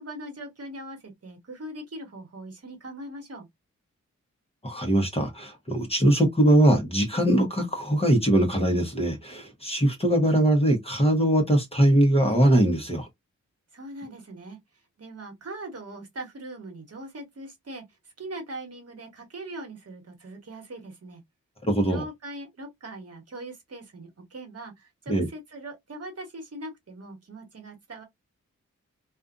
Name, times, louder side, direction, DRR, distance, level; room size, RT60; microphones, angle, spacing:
voice 1, 0.0-3.5 13.7-14.6 15.0-17.8 18.2-21.2 21.8-28.0, right 1 dB, 50° right, 1.2 m, -41 dB
voice 2, 4.6-13.1 21.7-22.0 25.1-25.3, right 1 dB, 20° left, 1.0 m, -21 dB
2.5 x 2.4 x 2.4 m
cardioid pair, 70°, 31 cm